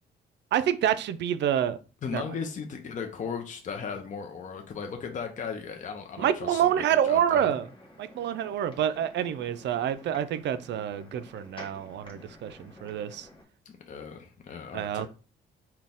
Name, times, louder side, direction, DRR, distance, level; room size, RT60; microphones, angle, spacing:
voice 1, 0.5-1.8 2.1-2.2 6.2-7.7 8.0-13.3 14.7-15.1, right 10 dB, 65° right, 0.4 m, -27 dB
voice 2, 2.0-6.7 7.0-7.5 13.7-15.1, left 6 dB, 40° left, 0.6 m, -37 dB
sound 1, 6.7-13.4, left 1 dB, 25° left, 1.2 m, -51 dB
4.0 x 2.2 x 3.5 m
cardioid pair, 90°, 20 cm